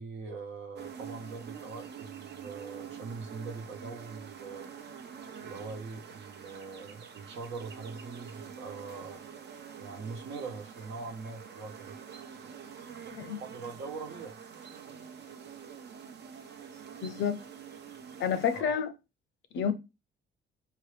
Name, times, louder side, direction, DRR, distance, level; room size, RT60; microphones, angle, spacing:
voice 1, 0.0-4.7 5.4-9.2 9.8-11.9 13.4-14.4 18.5-18.7, right 4 dB, 75° right, 1.1 m, -42 dB
sound 1, 0.7-18.6, right 7 dB, 60° right, 0.8 m, -46 dB
voice 2, 17.0-17.4 18.2-18.9 19.5-19.7, left 7 dB, 75° left, 0.6 m, -29 dB
4.6 x 2.9 x 3.3 m
cardioid pair, 90°, 20 cm